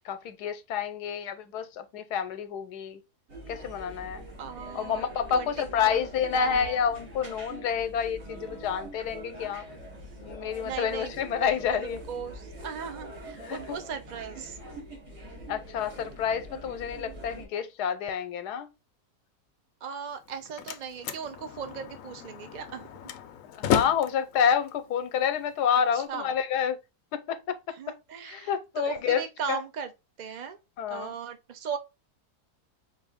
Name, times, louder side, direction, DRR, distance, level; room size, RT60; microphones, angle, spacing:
voice 1, 0.0-3.0 3.5-4.2 4.7-9.6 10.2-12.0 13.4-13.8 15.5-18.7 23.5-26.8 27.1-27.6 28.2-29.2 29.5-29.6 30.8-31.1, left 7 dB, 85° left, 1.2 m, -29 dB
sound 1, 3.3-17.4, right 1 dB, 80° right, 3.0 m, -44 dB
voice 2, 4.4-6.0 6.3-6.8 9.5-9.6 10.6-11.2 11.4-14.6 19.8-22.9 25.9-26.3 27.7-29.9 30.2-30.6 30.9-31.8, right 7 dB, 55° right, 0.5 m, -38 dB
Slam, 20.1-26.1, left 9 dB, 70° left, 0.8 m, -34 dB
5.1 x 2.7 x 3.5 m
omnidirectional pair, 1.7 m